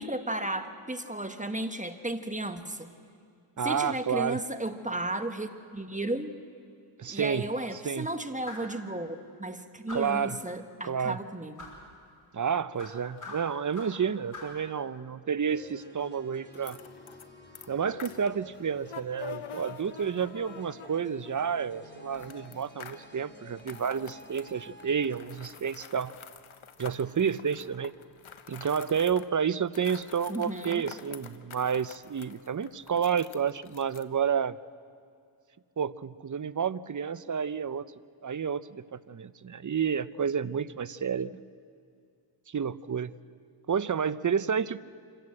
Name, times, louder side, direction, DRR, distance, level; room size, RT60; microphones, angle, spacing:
voice 1, 0.0-2.9 3.6-6.3 7.1-11.6 30.3-30.8, right 1 dB, 15° right, 7 dB, 1.4 m, -34 dB
voice 2, 3.6-4.4 7.0-7.5 7.8-8.1 9.9-10.4 10.8-11.2 12.3-16.8 17.7-26.1 26.8-27.9 28.5-34.6 35.8-37.8 38.2-41.4 42.5-43.1 43.7-44.8, right 7 dB, 40° right, 16 dB, 0.7 m, -30 dB
sound 1, 8.4-8.8 9.9-10.3 11.6-11.8 12.8-14.0 14.3-14.6, left 2 dB, 40° left, 5.8 m, -43 dB
sound 2, 15.5-25.2, left 1 dB, 20° left, 3.2 m, -51 dB
sound 3, 16.5-17.3 17.5-21.5 22.1-23.1 23.6-29.3 29.7-34.0, left 8 dB, 75° left, 1.2 m, -47 dB
26.5 x 15.5 x 7.8 m, 2.4 s
cardioid pair, 55°, 49 cm